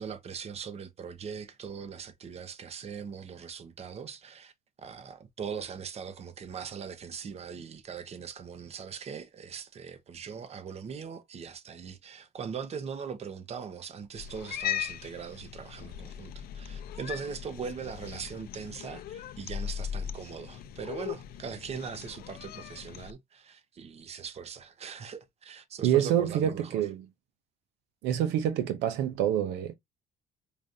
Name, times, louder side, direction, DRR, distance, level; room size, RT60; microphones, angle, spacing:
voice 1, 0.0-4.5 4.8-26.9, right 6 dB, 40° right, 0.8 m, -40 dB
Cat, 14.1-23.1, left 10 dB, 65° left, 0.5 m, -39 dB
voice 2, 25.8-27.0 28.0-29.7, right 10 dB, 90° right, 0.6 m, -27 dB
5.0 x 2.5 x 2.6 m
cardioid pair, 110°, 17 cm